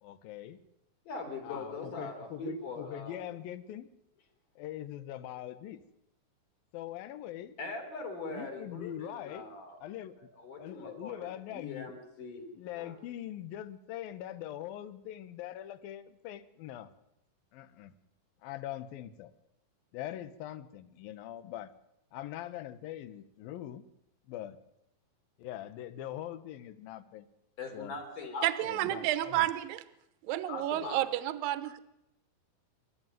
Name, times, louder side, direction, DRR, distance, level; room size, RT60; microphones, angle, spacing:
voice 1, 0.0-0.6 1.4-3.9 4.6-5.8 6.7-7.5 8.3-9.4 9.8-10.3 10.6-11.9 12.6-16.9 17.5-17.9 18.4-19.3 19.9-21.7 22.1-23.8 24.3-24.6 25.4-27.3 27.7-28.0 28.7-29.5, left 12 dB, 75° left, 13 dB, 2.8 m, -42 dB
voice 2, 1.1-3.2 7.6-9.8 10.2-12.5 12.7-13.0 27.6-28.7 30.5-31.0, left 3 dB, 55° left, 3 dB, 5.5 m, -41 dB
voice 3, 28.4-29.8 30.3-31.8, right 14 dB, 75° right, 12 dB, 2.6 m, -30 dB
28.0 x 13.0 x 9.2 m, 0.88 s
omnidirectional pair, 4.4 m